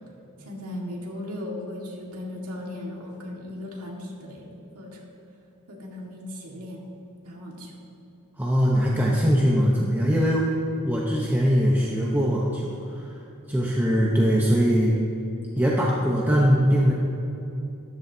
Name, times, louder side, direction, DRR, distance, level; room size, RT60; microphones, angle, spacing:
voice 1, 0.4-4.5 4.7-5.0 5.7-6.9 7.3-7.7, left 1 dB, 85° right, -1 dB, 1.8 m, -37 dB
voice 2, 8.4-10.5 10.8-13.2 13.5-14.9 15.6-16.9, equal, 10° right, -4 dB, 0.9 m, -21 dB
13.5 x 11.0 x 2.8 m, 2.9 s
head